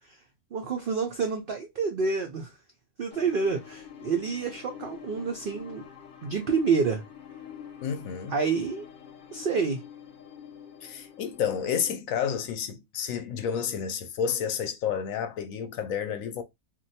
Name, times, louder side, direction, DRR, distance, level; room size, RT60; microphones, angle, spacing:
voice 1, 0.5-2.5 3.0-5.8 6.2-7.0 8.3-8.9 9.3-9.8, right 5 dB, 75° right, 0.5 m, -28 dB
sound 1, 3.1-11.9, left 8 dB, 55° left, 0.6 m, -46 dB
voice 2, 7.8-8.4 10.8-16.4, left 8 dB, 70° left, 0.9 m, -30 dB
2.5 x 2.2 x 4.0 m
omnidirectional pair, 1.6 m